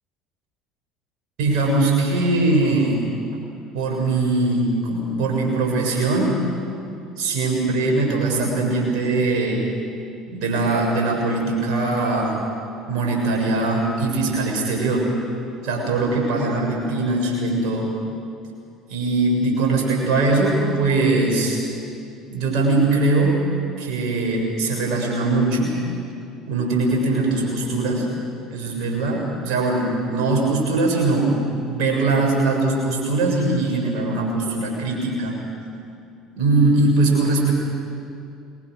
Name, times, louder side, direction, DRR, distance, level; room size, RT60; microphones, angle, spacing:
voice 1, 1.4-3.0 3.7-6.4 7.2-9.6 10.3-12.4 12.9-15.1 15.6-17.9 18.9-21.6 22.3-23.4 23.8-25.8 26.5-28.1 28.5-31.4 31.6-35.3 36.3-37.5, right 2 dB, 60° right, -1 dB, 7.2 m, -21 dB
28.0 x 22.0 x 6.6 m, 2.5 s
figure-of-eight pair, 60°, 0 cm